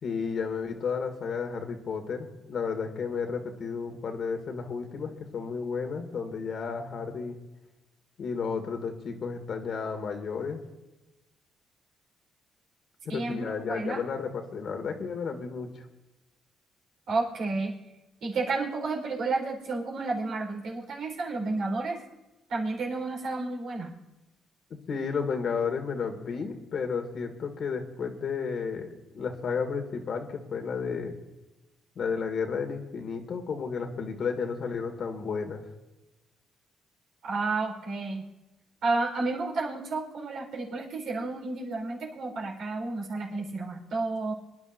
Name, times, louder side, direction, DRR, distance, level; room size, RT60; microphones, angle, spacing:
voice 1, 0.0-7.4 8.2-10.6 13.1-15.8 24.9-31.2 32.0-35.6, left 5 dB, 60° left, 5 dB, 2.1 m, -32 dB
voice 2, 13.1-14.0 17.1-17.7 18.2-22.0 22.5-23.9 37.2-38.2 38.8-44.3, right 3 dB, 70° right, 0 dB, 4.2 m, -31 dB
24.5 x 11.0 x 2.6 m, 1.0 s
cardioid pair, 90°, 0 cm